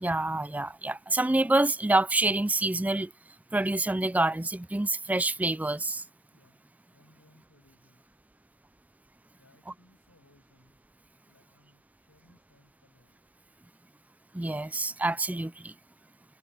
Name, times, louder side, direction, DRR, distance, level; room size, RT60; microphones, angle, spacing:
voice 1, 0.0-3.1 3.5-6.0 14.3-15.7, right 2 dB, 5° right, 0.3 m, -27 dB
voice 2, 6.3-8.1 9.4-10.8 11.3-13.2, left 1 dB, 80° left, 7.6 m, -64 dB
head